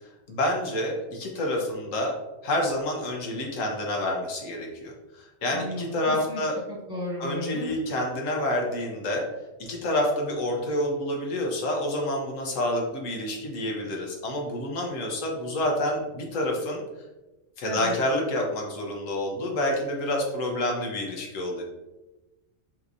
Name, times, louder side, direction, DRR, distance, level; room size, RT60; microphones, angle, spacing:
voice 1, 0.3-2.1 2.4-6.6 7.2-9.2 9.6-16.8 17.6-21.6, left 1 dB, 80° left, 0 dB, 1.3 m, -28 dB
voice 2, 5.5-6.4 6.7-7.6 17.6-17.9, left 1 dB, 20° right, -7 dB, 1.4 m, -34 dB
5.8 x 2.9 x 2.6 m, 1.1 s
omnidirectional pair, 1.3 m